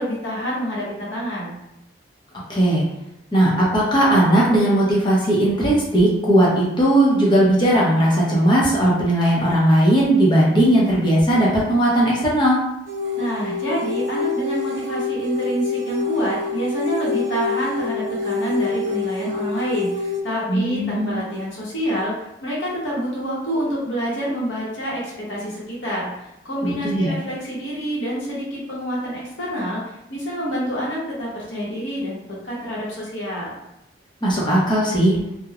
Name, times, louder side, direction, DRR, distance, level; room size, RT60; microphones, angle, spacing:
voice 1, 0.0-1.6 13.2-22.1 22.4-26.1 26.4-33.5, equal, 90° left, -5 dB, 1.0 m, -27 dB
voice 2, 2.5-2.8 3.3-12.6 20.5-21.2 26.6-27.1 34.2-35.2, right 1 dB, 25° left, -6 dB, 0.7 m, -17 dB
sound 1, 12.9-20.2, left 3 dB, 90° right, 0.4 m, -26 dB
2.9 x 2.1 x 2.4 m, 0.86 s
head